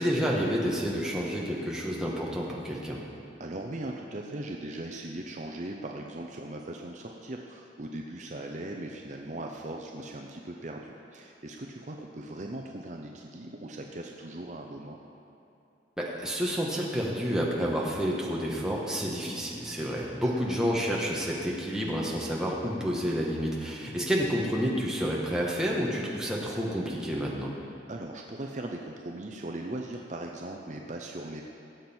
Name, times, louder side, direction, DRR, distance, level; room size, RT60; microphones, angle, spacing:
voice 1, 0.0-3.0 16.0-27.5, equal, 5° right, -4 dB, 1.5 m, -29 dB
voice 2, 3.4-15.0 20.2-20.6 24.0-24.1 27.9-31.4, right 1 dB, 40° right, 1 dB, 0.7 m, -39 dB
18.5 x 7.9 x 4.5 m, 2.8 s
head